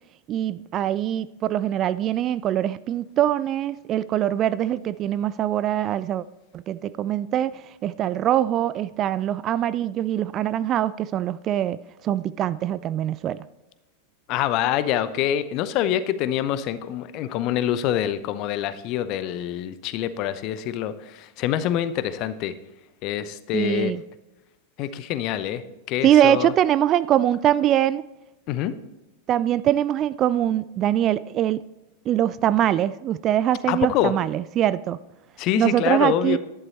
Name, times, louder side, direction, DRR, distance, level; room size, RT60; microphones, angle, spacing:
voice 1, 0.3-6.2 6.5-11.8 12.0-13.4 23.5-24.0 26.0-28.0 29.3-31.6 32.1-35.0 35.6-36.4, right 11 dB, 30° right, 0.3 m, -23 dB
voice 2, 14.3-22.6 23.0-23.9 24.8-26.5 28.5-28.8 33.7-34.1 35.4-36.4, left 11 dB, 40° left, 0.7 m, -25 dB
11.0 x 11.0 x 4.2 m
figure-of-eight pair, 90°, 0 cm